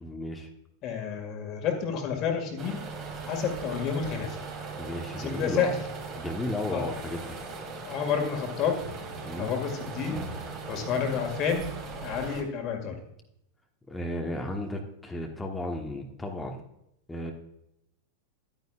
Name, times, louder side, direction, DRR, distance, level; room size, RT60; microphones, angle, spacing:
voice 1, 0.0-0.5 4.8-5.7 6.2-7.4 9.2-9.5 13.9-16.6 17.1-17.3, left 1 dB, 10° left, 2 dB, 1.2 m, -34 dB
voice 2, 0.8-2.8 3.3-4.4 5.1-5.8 6.7-6.9 7.9-8.8 9.4-10.2 10.7-11.7 12.0-13.0, left 7 dB, 35° left, 4 dB, 2.0 m, -29 dB
sound 1, 2.6-12.4, right 4 dB, 35° right, 2.5 m, -39 dB
11.5 x 9.4 x 2.4 m, 0.80 s
figure-of-eight pair, 90°, 0 cm